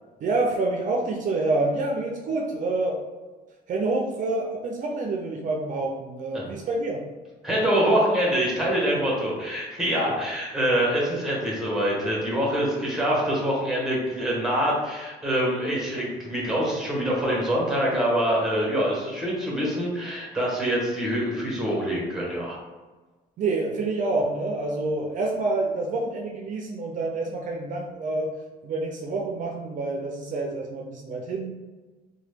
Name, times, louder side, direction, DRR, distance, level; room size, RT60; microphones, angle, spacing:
voice 1, 0.2-3.0 3.7-7.0 8.9-9.0 9.9-10.0 23.4-28.3 28.6-31.5, right 2 dB, 50° right, 0 dB, 0.5 m, -27 dB
voice 2, 7.4-22.6, equal, 5° right, -4 dB, 1.1 m, -25 dB
2.8 x 2.3 x 3.3 m, 1.2 s
cardioid pair, 110°, 17 cm